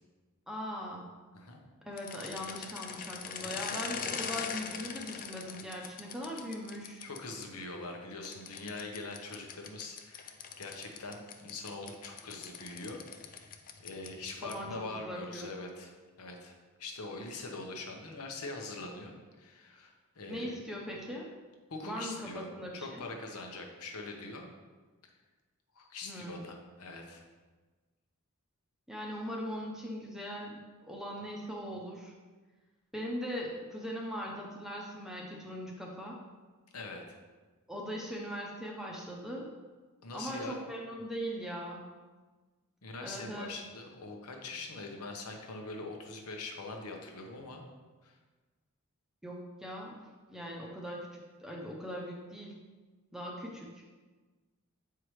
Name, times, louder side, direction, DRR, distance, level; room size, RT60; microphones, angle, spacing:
voice 1, 0.5-1.1 1.8-7.0 14.4-15.5 20.3-21.3 21.8-23.1 26.0-26.5 28.9-32.1 32.9-36.2 37.7-39.5 40.1-41.8 43.0-43.5 49.2-52.6 53.1-53.8, equal, ahead, -2 dB, 0.6 m, -40 dB
sound 1, 1.9-7.4 8.2-14.7, left 6 dB, 40° left, 0.4 m, -42 dB
voice 2, 7.0-15.9 16.2-20.6 21.7-24.5 25.8-27.2 36.7-37.2 40.0-40.6 42.8-47.6 48.0-48.2, left 3 dB, 85° left, 2 dB, 1.0 m, -43 dB
7.7 x 4.7 x 3.2 m, 1.3 s
head